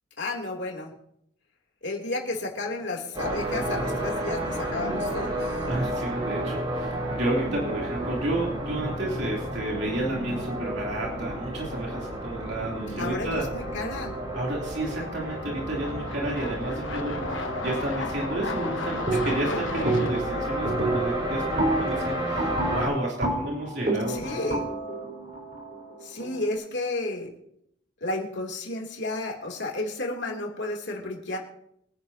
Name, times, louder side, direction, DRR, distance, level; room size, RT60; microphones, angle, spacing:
voice 1, 0.2-0.9 1.8-5.5 13.0-14.1 19.2-19.4 24.1-24.7 26.0-27.3 28.0-31.4, left 2 dB, 60° left, 0 dB, 3.0 m, -32 dB
sound 1, 2.3-2.9 3.3-3.4 6.3-6.4 7.7-7.9 8.3-8.4 13.7-13.8 14.6-20.2, left 3 dB, 80° left, 1.2 m, -36 dB
sound 2, 3.1-22.9, right 1 dB, 25° right, 6.9 m, -31 dB
voice 2, 5.7-13.4 14.3-24.4, right 1 dB, 60° right, -3 dB, 3.1 m, -31 dB
sound 3, 19.1-19.5 19.8-20.3 20.6-26.5, right 2 dB, 45° right, 4.1 m, -29 dB
24.0 x 10.5 x 2.8 m, 0.74 s
head